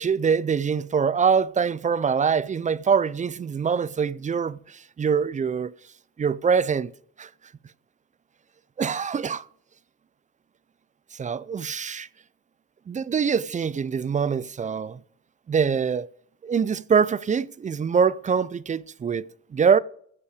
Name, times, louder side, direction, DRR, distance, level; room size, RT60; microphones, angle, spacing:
voice 1, 0.0-5.7 6.2-6.9 7.2-7.3 8.8-9.4 11.1-12.1 12.9-15.0 15.5-16.1 16.4-19.8, right 6 dB, 25° right, 0.4 m, -24 dB
15.0 x 5.5 x 4.8 m
cardioid pair, 90°, 30 cm